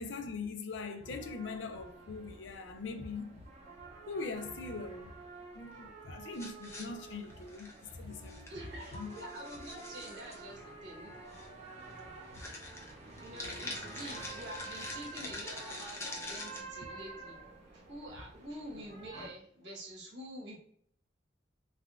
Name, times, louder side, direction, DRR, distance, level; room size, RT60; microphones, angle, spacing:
voice 1, 0.0-3.4 4.1-5.1 5.5-8.6 8.9-9.2 12.3-12.4, left 4 dB, 80° left, 0.4 m, -41 dB
sound 1, 1.0-19.3, right 3 dB, 40° right, 0.6 m, -50 dB
sound 2, 6.3-7.9 8.3-8.5 8.8-10.4 11.3-11.5 11.8-12.0 12.3-16.6, left 2 dB, 15° left, 0.5 m, -45 dB
Wind instrument woodwind instrument, 8.1-10.5 10.8-14.9, left 1 dB, 40° left, 1.3 m, -59 dB
voice 2, 8.5-11.4 13.2-17.4 17.7-20.6, right 1 dB, 75° right, 1.1 m, -47 dB
3.4 x 2.2 x 2.3 m
head